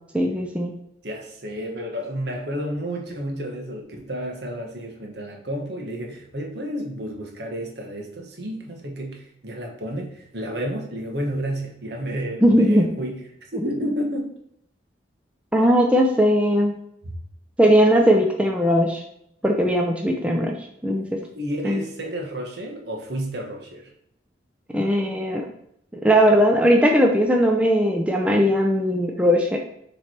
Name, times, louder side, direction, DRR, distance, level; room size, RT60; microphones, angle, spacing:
voice 1, 0.1-0.7 12.4-12.9 13.6-13.7 15.5-16.7 17.6-19.0 19.4-20.5 20.8-21.0 21.6-21.8 24.7-25.4 26.0-29.6, equal, 5° right, 1 dB, 0.6 m, -18 dB
voice 2, 1.0-13.2 13.5-14.3 17.0-17.1 20.9-21.0 21.3-23.9, equal, 65° right, 1 dB, 1.4 m, -31 dB
6.9 x 3.3 x 4.5 m, 0.73 s
head